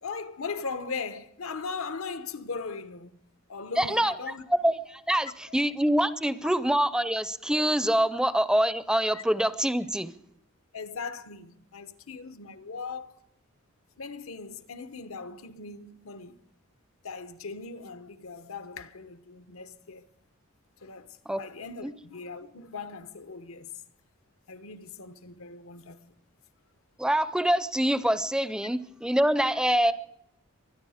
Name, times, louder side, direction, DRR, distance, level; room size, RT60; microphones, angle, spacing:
voice 1, 0.0-3.2 3.5-4.4 5.5-5.6 8.0-8.1 9.1-9.2 10.7-13.1 14.0-16.4 17.0-20.1 20.8-23.7 24.5-26.1, left 4 dB, 80° left, 1.0 m, -39 dB
voice 2, 3.8-4.1 4.6-10.1 21.3-21.4 21.8-21.9 27.0-29.9, right 1 dB, 5° right, 0.5 m, -25 dB
24.0 x 10.5 x 5.0 m
head